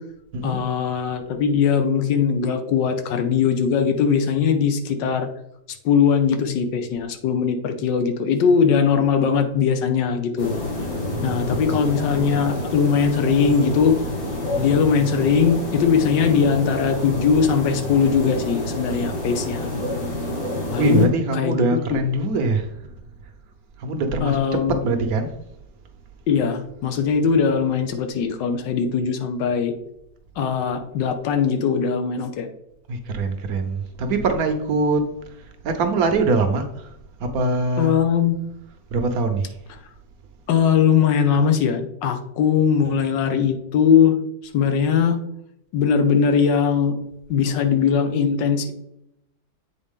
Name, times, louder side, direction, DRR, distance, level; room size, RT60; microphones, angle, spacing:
voice 1, 0.4-5.3 5.8-10.5 11.2-14.0 14.6-19.7 20.7-22.0 24.2-24.8 26.3-29.7 30.4-32.5 37.8-38.4 40.5-44.1 44.5-45.2 45.7-47.0 47.3-48.7, left 6 dB, 85° left, 1.5 m, -20 dB
sound 1, 10.4-21.1, left 1 dB, 55° left, 2.3 m, -28 dB
voice 2, 11.1-11.6 20.8-22.9 23.8-25.4 32.9-35.1 35.6-36.9 37.2-37.9 38.9-39.5, right 3 dB, 65° right, 1.1 m, -23 dB
7.8 x 4.2 x 3.6 m
omnidirectional pair, 1.9 m